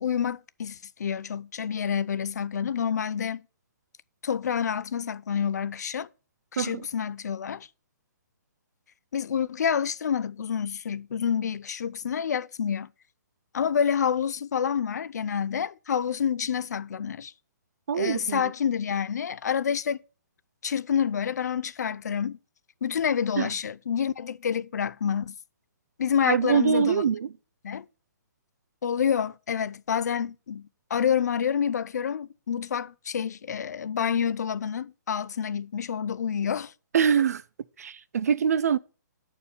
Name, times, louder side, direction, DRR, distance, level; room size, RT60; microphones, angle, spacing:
voice 1, 0.0-3.4 4.2-6.1 6.5-7.7 9.1-12.9 13.5-17.3 17.9-20.0 20.6-22.4 22.8-25.3 26.0-27.0 27.6-27.9 28.8-36.7, left 7 dB, 60° left, 0.5 m, -28 dB
voice 2, 17.9-18.5 23.4-23.5 26.2-27.3 36.9-37.4 37.8-38.8, right 7 dB, 55° right, 0.4 m, -24 dB
8.5 x 4.5 x 6.5 m
hypercardioid pair, 175°, 10 cm